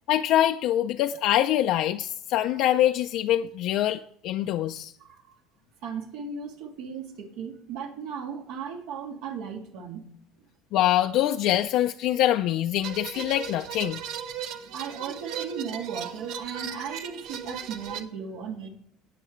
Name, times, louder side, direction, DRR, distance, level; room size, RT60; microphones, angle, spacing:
voice 1, 0.1-4.9 10.7-14.0, left 12 dB, 60° left, 0.5 m, -24 dB
voice 2, 5.0-5.4 5.8-10.1 14.0-14.1 14.7-18.7, right 6 dB, 80° right, 2.2 m, -36 dB
sound 1, 12.8-18.0, right 8 dB, 60° right, 0.8 m, -37 dB
19.0 x 6.8 x 3.1 m
cardioid pair, 145°, 0 cm